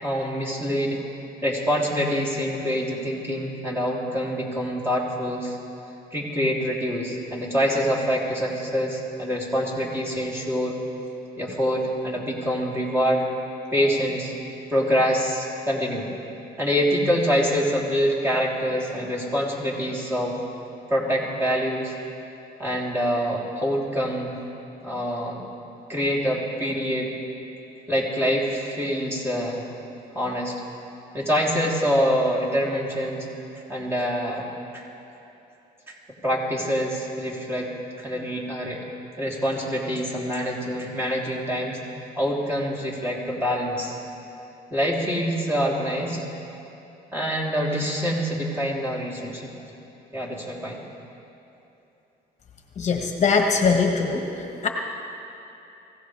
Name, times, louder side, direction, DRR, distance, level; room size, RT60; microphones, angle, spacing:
voice 1, 0.0-1.0 1.4-5.6 6.1-10.8 11.4-13.3 13.7-14.3 14.7-16.1 16.6-20.4 20.9-21.9 22.6-24.3 24.8-25.4 25.9-27.1 27.9-29.6 30.1-30.5 31.1-33.3 33.7-34.5 34.7-34.8 35.9-36.0 36.2-37.7 38.0-38.8 39.2-41.8 42.2-44.0 44.7-46.2 47.1-49.5 50.1-50.8, equal, 15° right, -5 dB, 3.3 m, -25 dB
voice 2, 52.8-54.2 54.6-54.7, left 5 dB, 45° left, 2 dB, 1.2 m, -21 dB
23.5 x 16.5 x 3.4 m, 2.9 s
cardioid pair, 110°, 17 cm